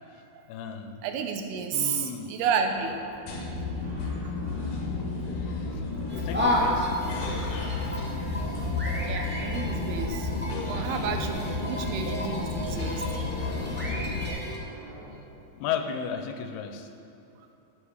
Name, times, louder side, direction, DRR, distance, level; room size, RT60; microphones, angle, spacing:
voice 1, 0.5-1.0 1.7-2.3 5.7-6.9 15.5-16.9, left 7 dB, 85° left, 7 dB, 2.8 m, -34 dB
voice 2, 1.0-3.0 3.5-3.6 9.1-10.3 10.6-13.0, right 6 dB, 80° right, 5 dB, 2.9 m, -31 dB
sound 1, 2.5-15.1, right 1 dB, 55° right, 2.9 m, -48 dB
sound 2, 3.3-14.3, left 3 dB, 65° left, 3.2 m, -32 dB
sound 3, 6.1-14.6, left 1 dB, 5° right, 1.1 m, -32 dB
11.5 x 8.0 x 8.1 m, 2.8 s
omnidirectional pair, 4.6 m